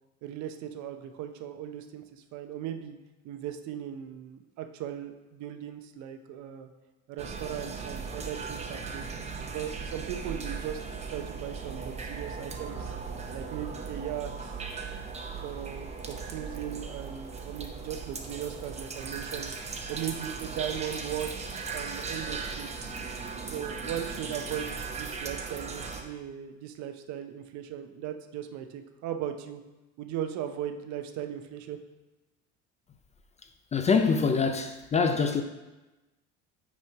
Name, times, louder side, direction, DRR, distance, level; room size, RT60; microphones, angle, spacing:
voice 1, 0.2-3.0 3.2-6.7 7.1-9.1 9.4-10.8 11.1-12.9 13.3-14.6 15.4-22.9 23.5-29.6 30.0-31.8, right 10 dB, 65° right, 0.7 m, -38 dB
sound 1, 7.2-26.0, right 4 dB, 20° right, 0.7 m, -38 dB
voice 2, 33.7-35.4, left 5 dB, 25° left, 0.3 m, -24 dB
5.9 x 4.4 x 4.6 m
cardioid pair, 120°, 31 cm